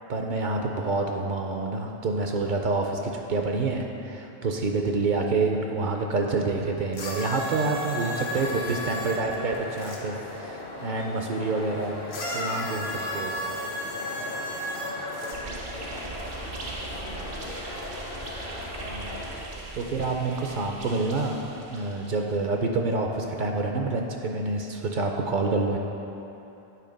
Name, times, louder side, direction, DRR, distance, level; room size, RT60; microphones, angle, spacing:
voice 1, 0.1-12.0 12.3-12.8 13.1-13.3 18.9-19.4 19.7-25.8, right 3 dB, 60° right, 2 dB, 0.6 m, -27 dB
sound 1, 6.9-10.0 12.1-15.4 16.3-16.4, left 1 dB, 90° left, 1.1 m, -33 dB
sound 2, 7.8-19.4, left 2 dB, 70° left, 1.2 m, -39 dB
voice 2, 11.7-18.2, left 2 dB, 50° left, 0 dB, 0.6 m, -47 dB
sound 3, 15.3-22.4, right 2 dB, 90° right, 1.1 m, -39 dB
8.4 x 3.5 x 5.1 m, 3.0 s
omnidirectional pair, 1.0 m